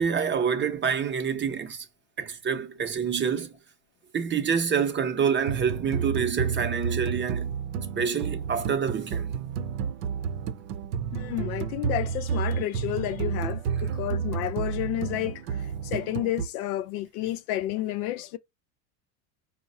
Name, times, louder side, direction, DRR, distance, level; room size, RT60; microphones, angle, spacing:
voice 1, 0.0-1.9 2.2-3.6 4.1-7.5 8.0-9.4 13.8-14.0, right 6 dB, 25° right, 0.6 m, -27 dB
sound 1, 5.5-16.5, right 7 dB, 80° right, 0.6 m, -31 dB
voice 2, 11.1-18.4, left 14 dB, 70° left, 0.6 m, -31 dB
4.5 x 2.1 x 4.0 m
hypercardioid pair, 95°, 47 cm